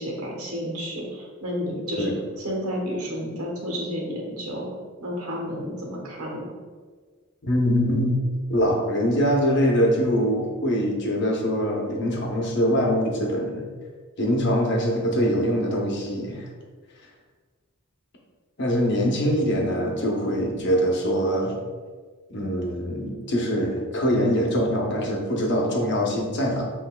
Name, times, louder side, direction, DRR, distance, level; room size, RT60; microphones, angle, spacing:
voice 1, 0.0-2.1 2.4-4.7 5.0-6.5, equal, 75° right, -2 dB, 1.2 m, -31 dB
voice 2, 7.4-8.2 8.5-13.7 14.2-16.5 18.6-21.6 22.3-26.7, equal, 55° left, -1 dB, 0.8 m, -23 dB
7.9 x 2.6 x 2.3 m, 1.5 s
head